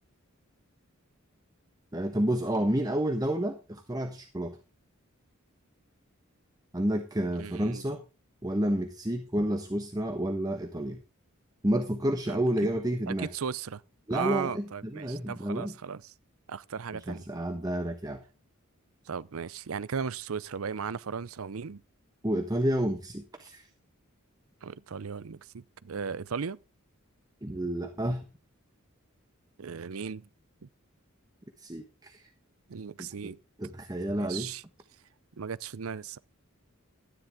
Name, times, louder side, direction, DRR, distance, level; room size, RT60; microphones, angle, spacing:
voice 1, 1.9-4.6 6.7-8.0 8.4-11.0 11.6-13.3 14.1-15.7 17.1-18.2 22.2-23.7 27.4-28.3 31.6-32.3 33.0-33.3 33.6-34.5, right 1 dB, 20° right, 1.2 m, -30 dB
voice 2, 7.4-7.9 12.3-12.4 13.1-13.8 14.1-16.1 16.5-17.3 19.1-21.8 24.6-26.6 29.6-30.3 30.6-30.7 32.7-33.4 34.1-34.6 35.4-36.2, right 6 dB, 75° right, 0.6 m, -36 dB
13.0 x 10.0 x 3.6 m
head